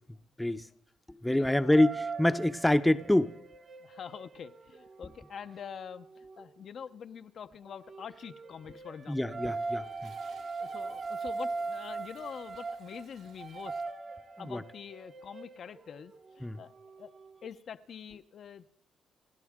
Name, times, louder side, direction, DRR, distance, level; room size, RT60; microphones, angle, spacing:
voice 1, 0.1-0.7 1.2-3.3 9.1-10.1 14.4-14.6 16.4-16.6, left 1 dB, 5° left, 0.8 m, -26 dB
voice 2, 1.3-1.8 3.8-9.4 10.6-13.8 14.4-16.7 17.0-17.1 17.4-18.7, left 7 dB, 60° left, 0.7 m, -45 dB
sound 1, 1.7-6.5 7.7-17.5, right 3 dB, 45° right, 1.2 m, -40 dB
Toilet flush, 8.8-13.8, right 4 dB, 75° right, 6.3 m, -61 dB
29.0 x 12.0 x 3.7 m
cardioid pair, 90°, 0 cm